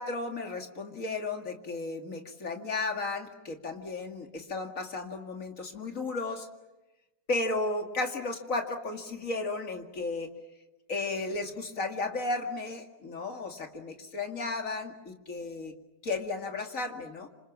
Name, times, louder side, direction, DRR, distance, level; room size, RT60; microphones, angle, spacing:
voice 1, 0.0-6.5 7.3-10.3 10.9-15.8 16.0-17.3, left 3 dB, 50° left, 4 dB, 2.6 m, -34 dB
26.5 x 26.5 x 7.2 m, 1.0 s
omnidirectional pair, 1.8 m